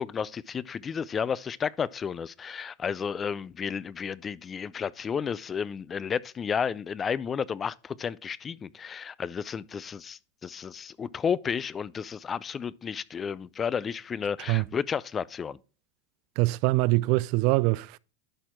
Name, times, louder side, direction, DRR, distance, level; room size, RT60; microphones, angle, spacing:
voice 1, 0.0-15.6, left 7 dB, 25° left, 0.4 m, -32 dB
voice 2, 16.4-18.0, right 20 dB, 60° right, 0.3 m, -24 dB
11.5 x 4.3 x 4.5 m
hypercardioid pair, 100°, 0 cm